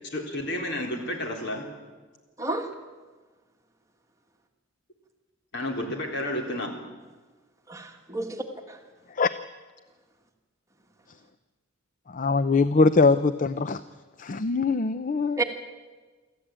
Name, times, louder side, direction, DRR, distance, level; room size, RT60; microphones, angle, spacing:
voice 1, 0.0-1.7 5.5-6.7, left 1 dB, 60° left, 2 dB, 3.8 m, -31 dB
voice 2, 2.4-2.7 7.7-8.8 15.4-15.5, right 3 dB, 15° right, 3 dB, 1.8 m, -31 dB
voice 3, 12.1-13.8 14.2-15.4, left 3 dB, 40° left, 13 dB, 0.6 m, -22 dB
25.0 x 14.0 x 8.9 m, 1.3 s
head